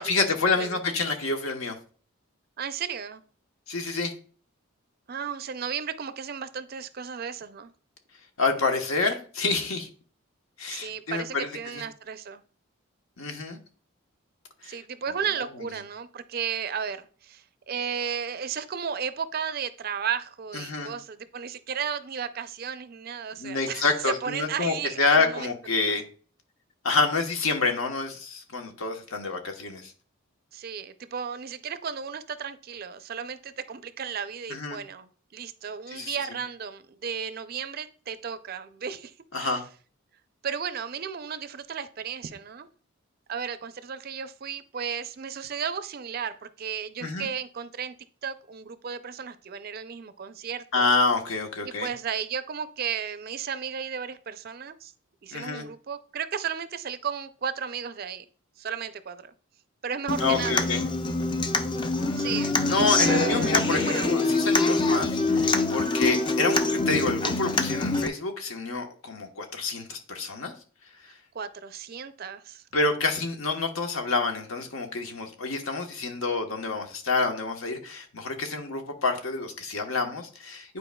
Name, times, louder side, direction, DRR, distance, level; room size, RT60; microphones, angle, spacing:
voice 1, 0.0-1.8 3.7-4.1 8.4-9.9 10.6-11.5 11.7-11.8 13.2-13.6 14.6-14.8 20.5-20.9 23.4-26.0 26.8-29.9 34.5-34.8 35.9-36.2 39.3-39.6 47.0-47.3 50.7-51.9 55.3-55.6 60.2-60.8 62.7-70.5 72.7-80.8, left 3 dB, 75° left, 4 dB, 1.1 m, -28 dB
voice 2, 2.6-3.2 5.1-7.7 10.7-12.4 14.7-25.5 25.8-26.0 30.5-39.6 40.4-42.7 43.3-47.9 48.2-50.9 51.6-54.9 55.2-58.3 58.6-59.3 59.8-60.8 62.2-62.5 63.0-64.4 71.3-72.6, right 7 dB, 45° right, 12 dB, 0.4 m, -34 dB
Human voice / Acoustic guitar, 60.1-68.1, left 3 dB, 20° left, 0.4 m, -25 dB
9.9 x 4.6 x 2.2 m, 0.42 s
head